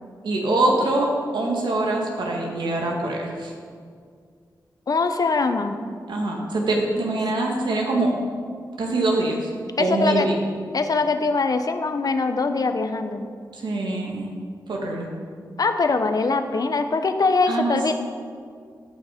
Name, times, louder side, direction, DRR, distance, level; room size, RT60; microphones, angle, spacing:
voice 1, 0.2-3.5 6.1-8.1 8.8-9.5 9.8-10.3 13.5-14.3 14.7-15.1 17.5-17.9, right 2 dB, 85° right, -1 dB, 2.0 m, -24 dB
voice 2, 4.9-5.8 9.8-10.3 10.7-13.3 15.6-17.9, left 3 dB, 55° left, 8 dB, 0.9 m, -22 dB
16.0 x 5.9 x 5.2 m, 2.1 s
cardioid pair, 65°, 8 cm